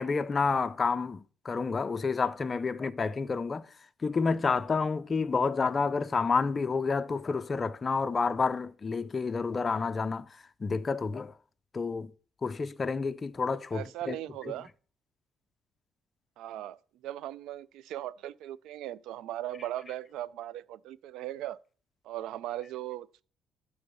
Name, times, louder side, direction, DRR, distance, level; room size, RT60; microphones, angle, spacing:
voice 1, 0.0-3.7 4.0-10.3 10.6-11.3 11.7-12.1 12.4-14.2, left 4 dB, 30° left, 0.5 m, -29 dB
voice 2, 13.7-14.7 16.4-21.6 22.0-23.2, right 13 dB, 85° right, 0.4 m, -38 dB
11.5 x 3.8 x 6.8 m
cardioid pair, 120°, 0 cm